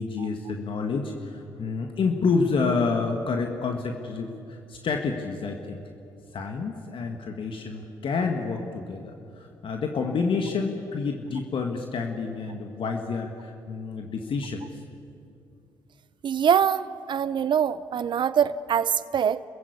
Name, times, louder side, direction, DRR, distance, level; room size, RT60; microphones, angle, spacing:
voice 1, 0.0-5.8 6.3-14.8, left 4 dB, 55° left, 3 dB, 1.9 m, -29 dB
voice 2, 16.2-19.4, right 8 dB, 50° right, 16 dB, 0.6 m, -24 dB
28.0 x 15.0 x 8.5 m, 2.6 s
hypercardioid pair, 45°, 10 cm